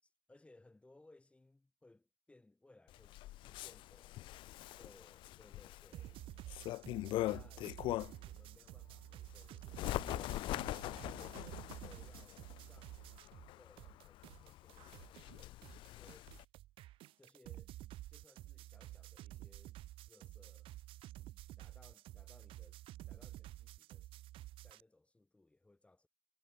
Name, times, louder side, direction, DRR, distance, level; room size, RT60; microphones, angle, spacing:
voice 1, 0.0-6.4 7.3-7.6 8.2-16.3 17.2-17.8 18.1-19.8 20.1-20.7 21.6-22.8 23.1-24.1 24.6-26.1, left 2 dB, 10° left, 4.5 m, -65 dB
Bird, 2.9-8.3 8.8-16.4, left 16 dB, 45° left, 0.4 m, -42 dB
sound 1, 5.9-13.5 13.8-24.8, right 15 dB, 50° right, 0.9 m, -52 dB
hypercardioid pair, 80°, 12 cm